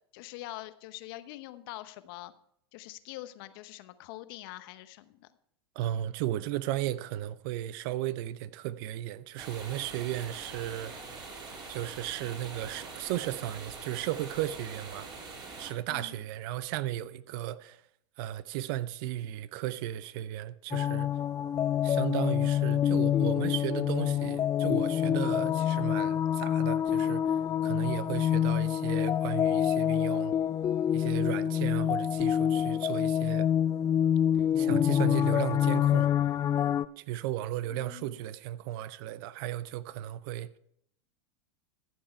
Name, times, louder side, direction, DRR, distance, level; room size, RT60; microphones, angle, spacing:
voice 1, 0.1-2.3 2.7-5.3 15.9-16.2 37.7-38.2, left 16 dB, 60° left, 0.9 m, -44 dB
voice 2, 5.8-10.9 11.7-15.1 15.6-17.8 18.2-21.1 21.8-30.3 30.9-33.5 34.5-36.1 37.0-40.5, right 13 dB, 60° right, 0.6 m, -35 dB
sound 1, 9.4-15.7, right 4 dB, 30° right, 3.6 m, -44 dB
sound 2, 20.7-36.9, left 10 dB, 25° left, 0.4 m, -27 dB
14.0 x 7.6 x 4.4 m
hypercardioid pair, 105°, 14 cm